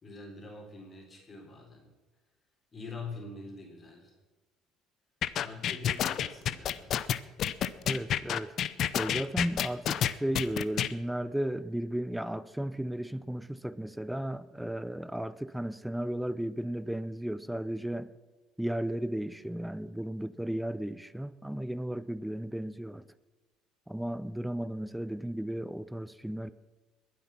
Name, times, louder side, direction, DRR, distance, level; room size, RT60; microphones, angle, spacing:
voice 1, 0.0-1.9 2.7-4.1 5.4-6.9, left 3 dB, 35° left, 3.8 m, -44 dB
sound 1, 5.2-10.9, left 10 dB, 55° left, 0.6 m, -29 dB
voice 2, 7.9-8.6 8.9-18.1 18.6-23.1 23.9-26.5, right 1 dB, 5° right, 0.6 m, -34 dB
21.5 x 8.1 x 5.9 m
supercardioid pair, 80°, 0 cm